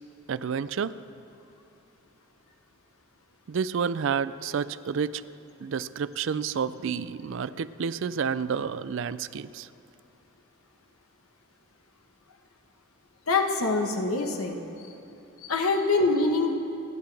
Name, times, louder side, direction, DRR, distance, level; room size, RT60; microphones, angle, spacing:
voice 1, 0.3-1.0 3.5-5.2 5.6-9.7, right 6 dB, 60° right, 15 dB, 0.4 m, -30 dB
voice 2, 13.3-14.6 15.4-16.6, left 3 dB, 85° left, 3 dB, 1.2 m, -24 dB
29.0 x 10.5 x 3.4 m, 2.8 s
head